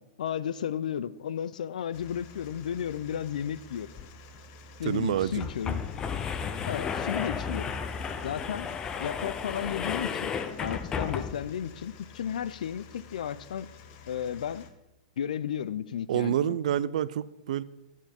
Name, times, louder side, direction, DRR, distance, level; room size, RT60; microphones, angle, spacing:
voice 1, 0.0-3.9 4.8-5.9 6.7-7.8 8.2-8.7 9.0-10.3 10.6-13.7 14.1-14.7 15.2-16.6, left 9 dB, 85° left, 0.5 m, -33 dB
sound 1, 1.9-14.7, left 3 dB, 40° left, 0.9 m, -50 dB
sound 2, 4.0-4.1 4.3-4.4 5.2-11.6, left 6 dB, 15° left, 0.5 m, -33 dB
voice 2, 4.9-5.5 16.1-17.6, right 11 dB, 70° right, 0.4 m, -28 dB
12.0 x 7.2 x 4.4 m
hypercardioid pair, 150°, 4 cm